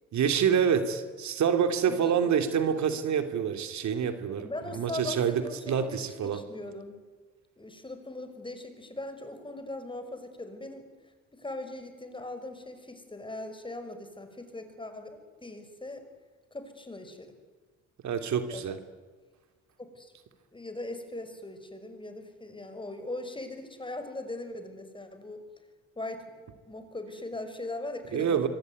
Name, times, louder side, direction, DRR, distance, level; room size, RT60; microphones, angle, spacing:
voice 1, 0.1-6.4 18.0-18.8 28.1-28.5, right 7 dB, 70° right, 8 dB, 2.8 m, -27 dB
voice 2, 1.9-2.4 4.4-6.0 6.3-7.0 7.6-10.9 11.3-16.0 16.5-17.3 18.5-18.8 19.8-20.1 20.5-25.4 26.0-28.5, left 2 dB, 15° left, 8 dB, 5.5 m, -40 dB
25.0 x 24.0 x 9.6 m, 1.4 s
cardioid pair, 90°, 30 cm